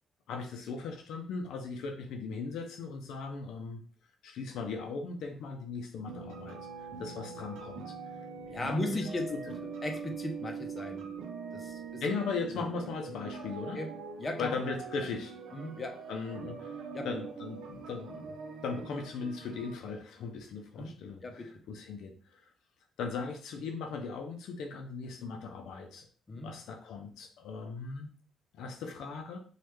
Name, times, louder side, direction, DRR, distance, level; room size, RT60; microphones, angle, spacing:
voice 1, 0.3-3.8 4.2-7.9 8.6-9.4 12.0-13.8 14.4-15.3 16.1-16.8 17.0-18.3 18.6-22.5 23.0-26.1 26.4-28.1 28.5-29.4, left 4 dB, 80° left, 3 dB, 0.5 m, -38 dB
sound 1, 6.1-19.8, right 5 dB, 90° right, 0.6 m, -43 dB
voice 2, 8.5-9.3 9.6-11.1 11.5-12.0 12.5-12.6 13.1-13.2 13.7-13.9 14.2-14.6 15.5-16.0 16.9-17.1 20.8-20.9 21.2-21.5 26.3-26.5, left 1 dB, 30° left, 4 dB, 0.7 m, -36 dB
3.2 x 2.4 x 3.1 m, 0.42 s
cardioid pair, 90°, 0 cm